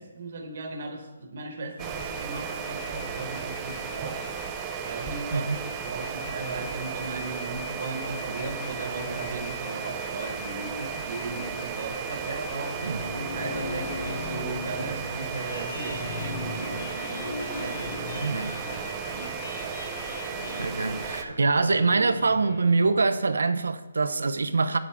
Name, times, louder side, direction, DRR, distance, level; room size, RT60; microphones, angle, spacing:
voice 1, 0.0-4.3 4.8-12.8 13.1-17.3 17.6-19.4, right 3 dB, 40° right, 2 dB, 1.1 m, -37 dB
sound 1, 1.8-21.2, right 5 dB, 10° right, 0.4 m, -34 dB
sound 2, 12.5-23.3, left 2 dB, 60° left, 1.7 m, -38 dB
voice 2, 18.2-18.5 20.6-24.8, right 3 dB, 90° right, 11 dB, 0.6 m, -24 dB
9.5 x 7.4 x 3.5 m, 1.2 s
hypercardioid pair, 175°, 0 cm